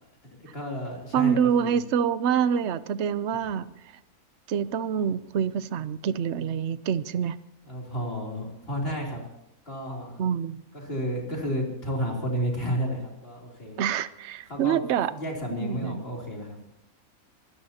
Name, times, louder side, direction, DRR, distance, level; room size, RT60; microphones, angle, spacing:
voice 1, 0.5-1.4 1.6-1.8 7.6-9.2 9.7-10.2 10.7-13.8 14.5-14.8 15.1-16.6, equal, 40° left, -2 dB, 3.6 m, -31 dB
voice 2, 1.1-3.7 4.5-7.4 10.2-10.6 13.8-15.1 15.5-16.0, right 8 dB, 60° right, 14 dB, 0.9 m, -26 dB
24.0 x 16.5 x 2.9 m, 0.81 s
omnidirectional pair, 1.5 m